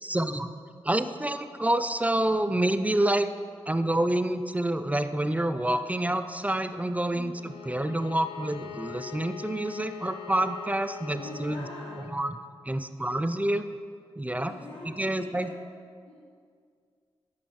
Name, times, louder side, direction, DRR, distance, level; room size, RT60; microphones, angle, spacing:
voice 1, 0.0-0.5 0.8-3.3 3.7-11.7 12.0-13.6 14.2-14.5 14.8-15.5, right 1 dB, 15° right, 11 dB, 0.4 m, -28 dB
Bowed string instrument, 7.3-12.2, left 12 dB, 60° left, 0.6 m, -43 dB
voice 2, 11.2-12.0 14.5-15.5 16.0-16.2, left 1 dB, 75° left, -6 dB, 1.2 m, -43 dB
8.4 x 6.3 x 3.1 m, 2.1 s
cardioid pair, 45°, 10 cm